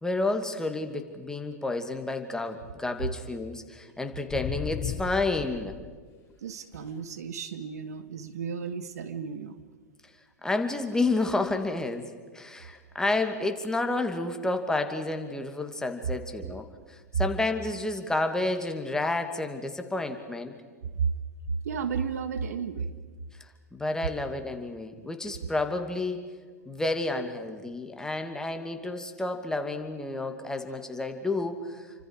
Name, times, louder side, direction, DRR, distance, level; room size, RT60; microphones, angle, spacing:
voice 1, 0.0-5.7 10.4-20.5 23.7-26.3 26.7-31.9, left 2 dB, 5° left, 5 dB, 2.4 m, -30 dB
sound 1, 4.3-5.9 6.7-6.9 12.7-12.8, left 7 dB, 35° left, 6.2 m, -35 dB
voice 2, 6.4-9.6 20.9-21.1 21.6-22.9, right 6 dB, 75° right, 10 dB, 1.6 m, -33 dB
29.5 x 25.0 x 4.9 m, 1.5 s
hypercardioid pair, 100°, 9 cm